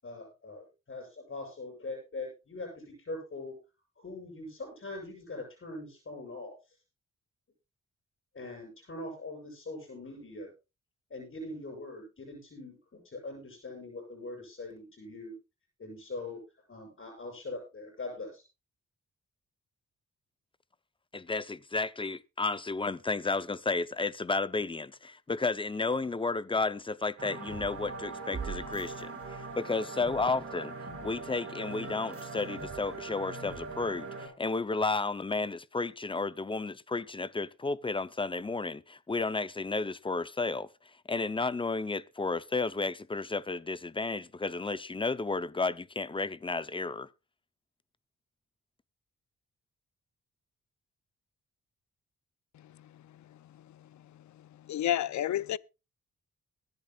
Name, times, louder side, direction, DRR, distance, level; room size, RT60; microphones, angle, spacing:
voice 1, 0.0-3.6 4.0-6.5 8.3-10.5 11.1-15.4 15.8-16.4 16.7-18.4, left 2 dB, 45° left, 7.3 m, -42 dB
voice 2, 21.1-30.7 31.0-40.7 41.1-47.1, left 3 dB, 20° left, 0.6 m, -32 dB
sound 1, 27.2-34.3, right 4 dB, 50° right, 5.9 m, -40 dB
voice 3, 54.6-55.6, left 12 dB, 75° left, 0.5 m, -29 dB
23.0 x 10.5 x 2.4 m
wide cardioid pair, 105°, 29 cm